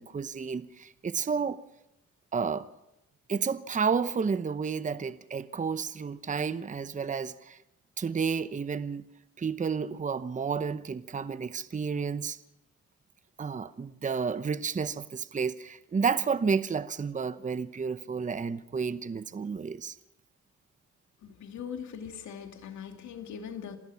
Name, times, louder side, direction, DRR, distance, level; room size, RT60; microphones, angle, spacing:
voice 1, 0.0-1.6 2.3-2.7 3.3-7.6 8.0-9.0 9.4-12.4 13.4-20.0, right 5 dB, 25° right, 13 dB, 0.9 m, -31 dB
voice 2, 21.2-23.8, left 7 dB, 70° left, 5 dB, 2.6 m, -41 dB
27.5 x 16.5 x 5.8 m, 0.87 s
cardioid pair, 90°, 30 cm